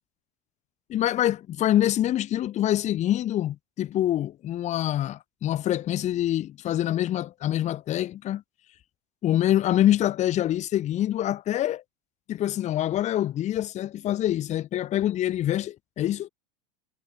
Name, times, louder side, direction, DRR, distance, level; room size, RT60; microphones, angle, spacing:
voice 1, 0.9-8.4 9.2-11.8 12.3-16.3, left 12 dB, 35° left, 0.7 m, -25 dB
supercardioid pair, 105°, 21 cm